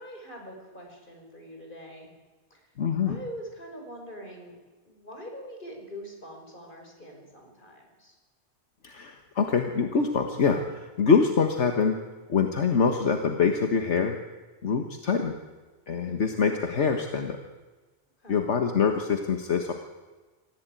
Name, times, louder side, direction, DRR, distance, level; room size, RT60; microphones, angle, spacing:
voice 1, 0.0-2.1 2.5-2.6 3.0-4.6 4.8-8.1 15.9-16.3 18.2-18.5, equal, 45° left, 1 dB, 5.4 m, -43 dB
voice 2, 2.8-3.2 8.8-12.0 12.3-14.2 14.6-15.4 15.9-17.4 18.3-19.7, left 5 dB, 75° left, 5 dB, 1.7 m, -24 dB
26.0 x 15.5 x 9.0 m, 1.3 s
omnidirectional pair, 1.2 m